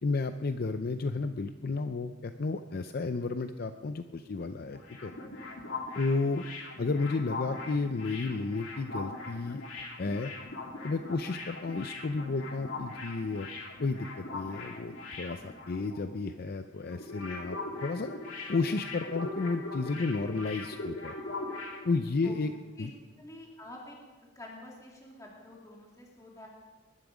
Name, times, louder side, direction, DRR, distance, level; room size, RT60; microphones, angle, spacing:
voice 1, 0.0-5.1 5.9-6.4 6.8-9.6 10.0-10.3 10.8-13.5 13.8-18.1 18.5-21.2 21.8-22.5 22.8-22.9, left 3 dB, 50° left, 9 dB, 0.5 m, -32 dB
sound 1, 4.6-16.2 16.4-16.6 16.9-21.9, left 2 dB, 85° left, 2.4 m, -41 dB
voice 2, 22.2-22.9 23.2-24.0 24.3-26.5, left 1 dB, 15° left, -3 dB, 2.4 m, -48 dB
20.5 x 11.5 x 5.1 m, 1.3 s
head